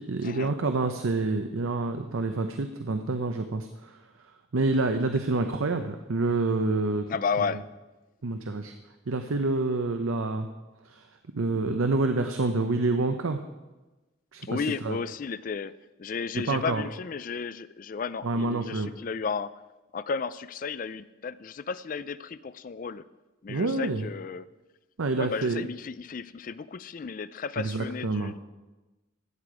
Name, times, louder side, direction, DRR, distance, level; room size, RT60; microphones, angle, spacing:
voice 1, 0.0-4.0 4.5-7.0 8.2-8.7 9.1-10.5 10.8-11.1 11.3-13.4 14.3-15.0 16.5-16.9 18.2-18.9 23.5-24.0 25.0-25.7 27.6-28.3, right 3 dB, 85° right, 7 dB, 0.7 m, -27 dB
voice 2, 7.1-7.6 14.4-15.7 16.0-19.5 19.9-23.0 23.4-24.4 25.2-28.4, left 5 dB, 40° left, 16 dB, 0.3 m, -33 dB
14.0 x 8.6 x 4.9 m, 1.1 s
head